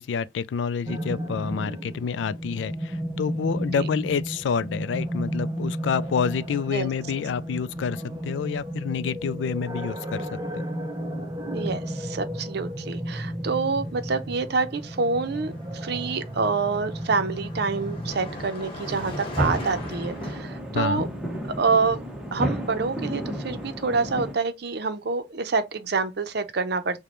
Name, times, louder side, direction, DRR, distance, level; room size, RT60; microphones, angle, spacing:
voice 1, 0.0-10.3 10.5-10.7 20.7-21.0, left 6 dB, 80° left, 0.3 m, -28 dB
sound 1, 0.9-18.1, equal, 25° right, 0.6 m, -33 dB
voice 2, 11.5-21.1 21.6-22.0 22.3-27.0, right 4 dB, 65° right, 0.6 m, -27 dB
Car passing by, 12.9-13.1 13.4-20.4, equal, 30° left, 1.4 m, -40 dB
sound 2, 19.0-24.3, equal, 5° right, 0.9 m, -32 dB
5.0 x 2.2 x 2.9 m
head